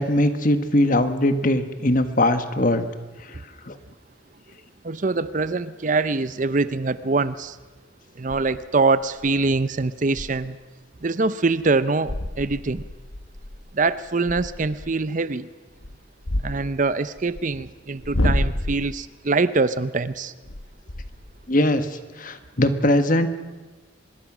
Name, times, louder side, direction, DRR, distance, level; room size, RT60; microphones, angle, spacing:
voice 1, 0.0-2.9 3.2-3.4 3.7-3.8 21.5-23.3, left 1 dB, 40° left, 9 dB, 1.4 m, -21 dB
sound 1, 4.5-4.6 8.3-8.5 9.0-9.3 9.6-9.7 10.1-10.4 10.9-11.0 11.6-11.7 12.0-14.9 15.7-17.4 17.9-19.0 20.4-21.5, left 1 dB, 75° left, 1.4 m, -29 dB
voice 2, 4.8-7.6 8.2-10.6 11.0-12.8 13.7-15.5 16.4-20.3, right 3 dB, 40° right, 15 dB, 0.6 m, -24 dB
24.5 x 21.0 x 6.1 m, 1.3 s
head